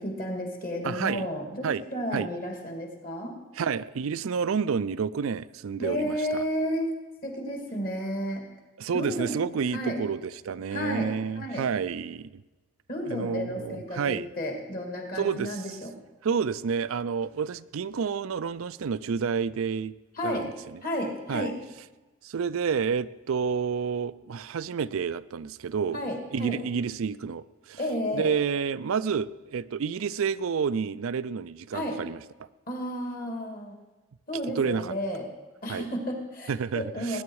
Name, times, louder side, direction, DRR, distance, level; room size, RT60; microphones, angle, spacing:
voice 1, 0.0-3.3 5.8-6.9 7.2-8.4 8.9-9.4 9.7-10.0 10.7-11.1 11.3-11.7 12.9-15.9 20.1-20.5 20.8-21.5 25.9-26.6 27.8-28.3 31.7-32.0 32.7-33.7 34.3-35.3 35.6-37.2, equal, 40° left, 2 dB, 2.5 m, -32 dB
voice 2, 0.8-1.3 1.6-1.8 2.1-2.3 3.6-6.4 8.8-12.4 13.1-14.3 15.2-15.6 16.2-19.9 20.2-20.8 21.3-21.5 22.2-26.0 26.3-27.8 28.1-32.2 34.4-34.9 35.7-35.9 36.5-37.2, right 6 dB, 85° right, 15 dB, 0.4 m, -29 dB
19.5 x 9.8 x 4.7 m, 1.2 s
head